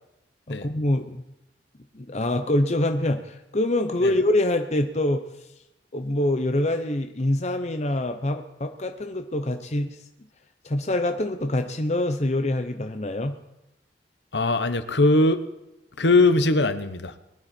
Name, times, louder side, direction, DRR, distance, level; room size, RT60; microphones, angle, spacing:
voice 1, 0.5-1.2 1.9-5.2 5.9-10.0 10.6-13.3, left 1 dB, 40° left, 6 dB, 0.8 m, -25 dB
voice 2, 14.3-15.4 16.0-17.1, left 2 dB, 75° left, 11 dB, 1.1 m, -20 dB
21.0 x 12.0 x 4.4 m, 0.91 s
head